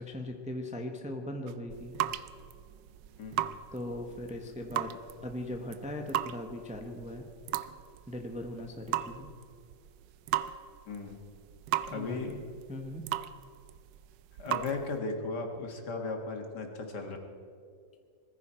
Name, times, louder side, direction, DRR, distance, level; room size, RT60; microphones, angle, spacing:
voice 1, 0.0-1.9 3.7-5.0 5.2-7.2 8.1-9.3 11.9-12.4 12.7-13.0, left 1 dB, 5° right, 3 dB, 0.9 m, -39 dB
sound 1, 1.5-15.0, right 12 dB, 80° right, 1.3 m, -38 dB
voice 2, 11.9-12.4 14.4-17.2, left 3 dB, 65° left, 3 dB, 2.3 m, -36 dB
21.0 x 14.5 x 4.5 m, 2.4 s
omnidirectional pair, 1.9 m